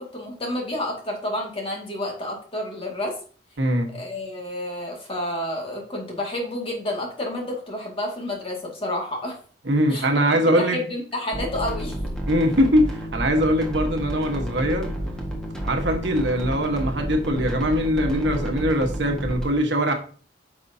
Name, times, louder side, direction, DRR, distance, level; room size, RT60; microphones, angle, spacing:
voice 1, 0.0-3.1 3.9-9.4 9.9-12.0, left 1 dB, 30° left, 2.1 m, -30 dB
voice 2, 3.6-3.9 9.6-10.8 12.3-14.9 15.6-19.9, equal, 65° right, 1.4 m, -22 dB
sound 1, 11.3-19.4, equal, 5° left, 1.6 m, -30 dB
9.7 x 6.0 x 2.8 m
head